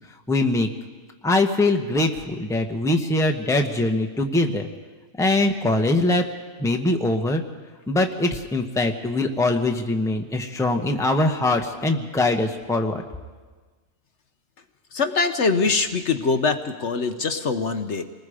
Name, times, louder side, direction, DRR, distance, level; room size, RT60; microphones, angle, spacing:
voice 1, 0.3-0.7 1.2-4.7 5.2-6.3 6.6-7.4 7.9-13.0, left 2 dB, 5° left, 3 dB, 1.0 m, -22 dB
voice 2, 14.9-18.0, left 4 dB, 60° left, 7 dB, 1.2 m, -23 dB
28.0 x 20.0 x 5.1 m, 1.4 s
omnidirectional pair, 1.4 m